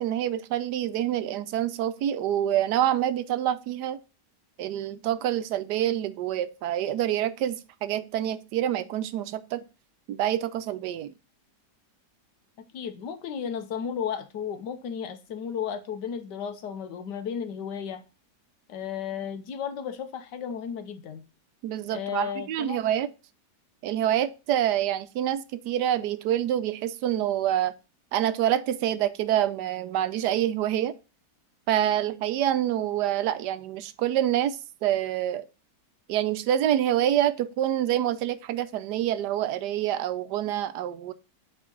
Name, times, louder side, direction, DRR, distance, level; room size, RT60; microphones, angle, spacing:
voice 1, 0.0-4.0 4.6-9.6 10.1-11.1 21.6-23.1 23.8-27.7 28.1-30.9 31.7-35.5 36.1-41.1, right 11 dB, 75° right, 1.2 m, -26 dB
voice 2, 12.7-18.0 18.7-21.2 21.9-22.8, left 7 dB, 85° left, 1.5 m, -34 dB
8.7 x 3.7 x 3.8 m
omnidirectional pair, 1.8 m